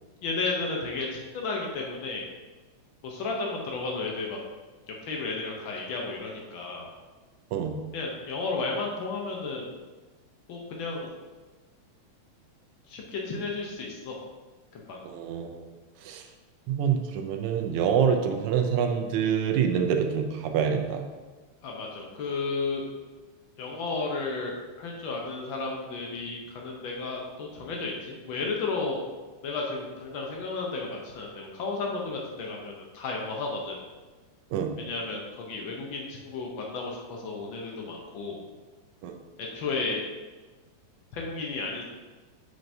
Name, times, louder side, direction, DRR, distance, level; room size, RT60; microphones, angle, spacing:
voice 1, 0.2-2.2 3.0-4.4 4.9-6.9 7.9-9.7 10.5-11.1 12.9-14.2 14.7-15.0 21.6-22.8 23.6-29.0 29.4-33.8 34.8-38.4 39.4-40.0 41.1-41.8, left 3 dB, 90° left, -1 dB, 1.0 m, -33 dB
voice 2, 15.0-15.7 16.0-16.2 16.7-21.0 34.5-34.7 39.0-39.1, right 7 dB, 80° right, 4 dB, 2.0 m, -26 dB
7.8 x 6.5 x 2.7 m, 1.3 s
omnidirectional pair, 3.4 m